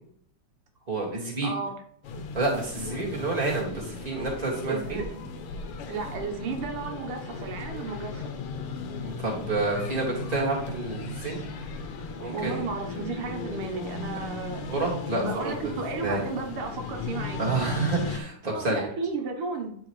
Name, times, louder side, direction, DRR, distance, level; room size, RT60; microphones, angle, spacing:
voice 1, 0.9-1.5 2.3-5.0 9.0-11.4 12.2-12.6 14.7-15.7 16.0-16.2 17.4-18.8, right 3 dB, 20° right, -4 dB, 2.0 m, -29 dB
voice 2, 1.4-1.8 4.6-5.1 5.9-8.3 12.3-17.4 18.5-19.8, right 4 dB, 80° right, 3 dB, 2.0 m, -33 dB
sound 1, 2.0-18.2, left 4 dB, 85° left, 1.8 m, -36 dB
11.5 x 4.6 x 3.2 m, 0.63 s
omnidirectional pair, 2.4 m